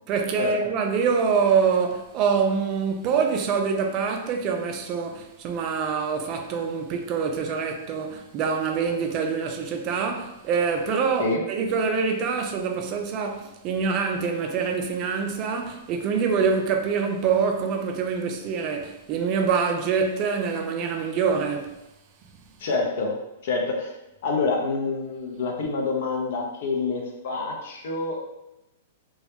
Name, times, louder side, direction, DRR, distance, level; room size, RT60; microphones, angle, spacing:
voice 1, 0.1-21.8, right 6 dB, 35° right, 0.3 m, -25 dB
voice 2, 22.6-23.2 23.4-23.9 24.2-28.2, left 3 dB, 65° left, 0.6 m, -27 dB
2.2 x 2.0 x 2.9 m
hypercardioid pair, 140°, 0 cm